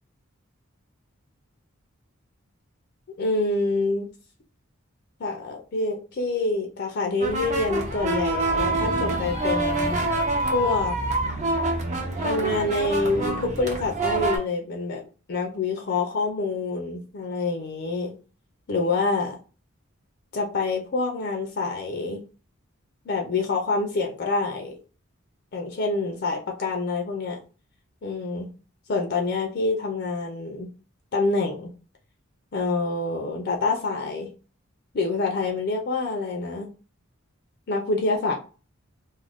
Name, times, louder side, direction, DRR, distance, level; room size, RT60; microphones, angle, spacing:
voice 1, 3.2-4.1 5.2-10.0 10.5-11.0 12.2-15.0 15.3-18.1 18.7-19.4 20.3-22.2 23.1-24.8 25.5-27.4 28.0-28.5 28.9-30.7 31.1-31.7 32.5-34.3 34.9-36.7 37.7-38.3, left 3 dB, 50° left, 2 dB, 0.4 m, -26 dB
sound 1, 7.2-14.4, right 2 dB, 35° right, 0.5 m, -26 dB
2.4 x 2.1 x 3.4 m, 0.35 s
head